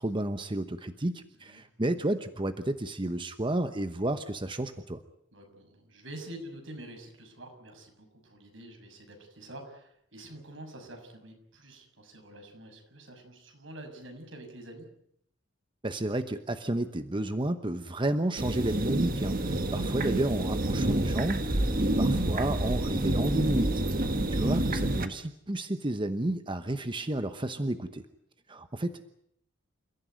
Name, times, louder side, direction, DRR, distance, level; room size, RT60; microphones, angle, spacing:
voice 1, 0.0-5.0 15.8-28.1 28.5-29.1, right 1 dB, 25° right, 9 dB, 1.0 m, -31 dB
voice 2, 1.3-1.6 5.3-14.9 23.8-24.4, right 1 dB, 80° right, 4 dB, 6.8 m, -47 dB
sound 1, 18.4-25.1, right 1 dB, 50° right, 1.6 m, -28 dB
29.0 x 15.5 x 9.4 m, 0.74 s
head